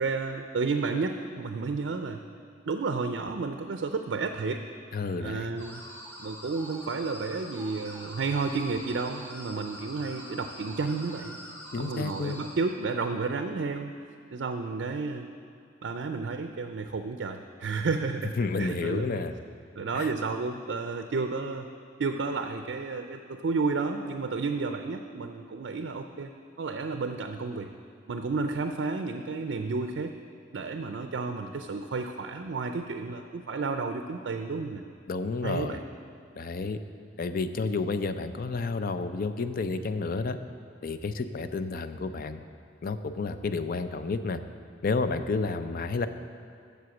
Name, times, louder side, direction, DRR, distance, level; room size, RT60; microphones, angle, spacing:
voice 1, 0.0-2.2 2.7-4.6 5.2-5.8 6.2-11.4 11.8-13.9 14.3-15.3 15.8-19.1 19.8-21.7 22.0-26.3 26.6-27.7 28.1-30.1 30.5-34.8 35.4-35.8, right 4 dB, 70° right, 6 dB, 0.4 m, -31 dB
voice 2, 4.9-5.6 11.7-12.5 18.4-19.3 19.9-20.1 35.1-35.8 36.4-36.8 37.2-40.4 40.8-42.4 42.8-44.4 44.8-46.1, left 4 dB, 50° left, 10 dB, 0.5 m, -30 dB
sound 1, 5.6-12.6, equal, 15° left, 1.3 m, -45 dB
7.8 x 6.8 x 7.0 m, 2.4 s
head